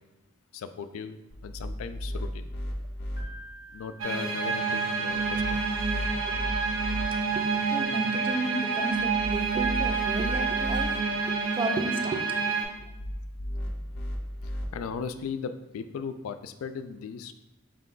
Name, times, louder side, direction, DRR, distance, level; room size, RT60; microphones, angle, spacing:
voice 1, 0.5-2.5 3.7-5.6 14.4-17.3, left 6 dB, 85° left, 10 dB, 0.3 m, -37 dB
sound 1, 1.3-3.2 5.1-7.0 8.9-10.8 12.7-14.6, equal, 55° left, 0.6 m, -35 dB
Piano, 3.2-5.3, equal, 40° left, 1.1 m, -50 dB
sound 2, 4.0-12.6, right 4 dB, 80° right, 0.7 m, -28 dB
voice 2, 7.7-11.0 11.3-12.2, right 2 dB, 25° right, 5 dB, 0.3 m, -33 dB
5.1 x 2.2 x 3.8 m, 0.94 s
head